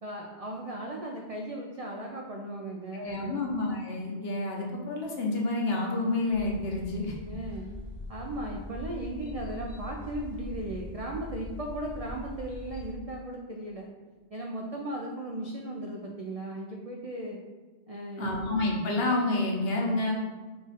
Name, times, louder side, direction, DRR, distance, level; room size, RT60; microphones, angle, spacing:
voice 1, 0.0-3.5 7.3-7.7 8.1-13.9 14.3-17.4 17.9-18.4, right 1 dB, 60° right, 0 dB, 0.4 m, -37 dB
voice 2, 2.9-7.1 18.2-20.1, left 2 dB, 60° left, -1 dB, 1.1 m, -29 dB
sound 1, 6.3-12.9, left 1 dB, 35° left, 0.8 m, -42 dB
5.0 x 2.4 x 4.0 m, 1.3 s
omnidirectional pair, 1.2 m